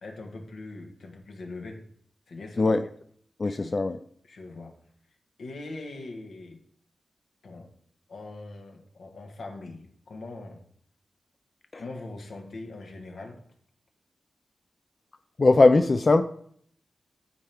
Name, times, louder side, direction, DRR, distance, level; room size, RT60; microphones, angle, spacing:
voice 1, 0.0-1.8 2.3-2.8 3.4-3.8 4.3-4.8 5.4-6.6 7.4-7.7 8.1-10.6 11.8-13.4, left 2 dB, 85° left, 2 dB, 1.3 m, -41 dB
voice 2, 3.4-4.0 11.7-11.8 15.4-16.2, left 3 dB, 45° left, 9 dB, 0.4 m, -20 dB
12.5 x 4.4 x 3.5 m, 0.64 s
cardioid pair, 75°, 0 cm